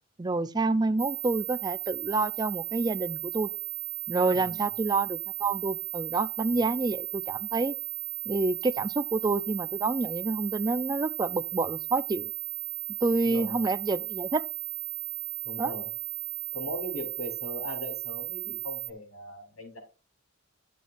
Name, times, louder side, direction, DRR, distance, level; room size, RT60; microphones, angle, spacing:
voice 1, 0.2-3.5 4.1-7.8 8.3-12.3 13.0-14.4 15.6-15.7, right 3 dB, 20° right, 0.4 m, -28 dB
sound 1, 1.0-18.9, right 22 dB, 75° right, 0.5 m, -36 dB
voice 2, 13.2-13.6 15.4-15.9 16.5-19.8, left 1 dB, 90° left, 4.0 m, -39 dB
12.5 x 7.2 x 2.5 m
head